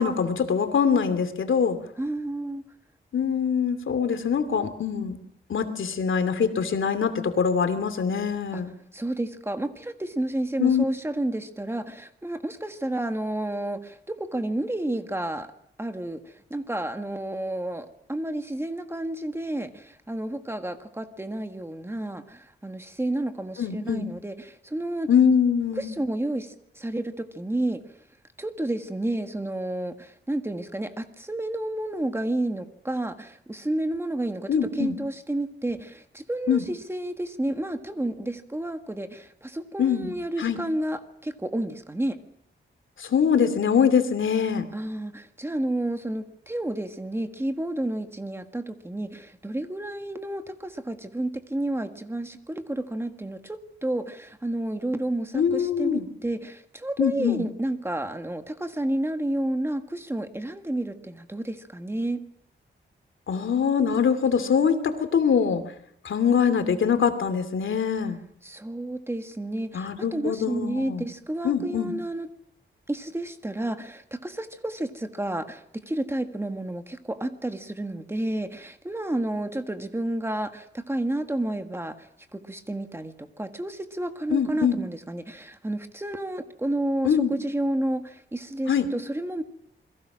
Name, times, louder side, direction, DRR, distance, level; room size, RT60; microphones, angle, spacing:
voice 1, 0.0-1.8 3.1-5.2 5.5-8.7 10.6-10.8 23.6-24.1 25.1-25.9 34.5-34.9 36.5-36.6 39.8-40.1 40.4-40.6 43.0-44.6 55.3-56.0 57.0-57.4 63.3-65.6 66.0-68.2 69.7-71.0 71.4-71.9 84.3-84.8 87.0-87.3 88.7-88.9, left 7 dB, 85° left, 9 dB, 2.6 m, -23 dB
voice 2, 2.0-2.6 8.5-8.6 8.9-15.5 15.8-25.1 25.8-27.8 28.4-42.2 44.7-62.2 68.4-72.3 72.9-89.4, right 1 dB, 10° right, 7 dB, 1.5 m, -31 dB
28.5 x 21.5 x 6.2 m, 0.72 s
wide cardioid pair, 175°, 20 cm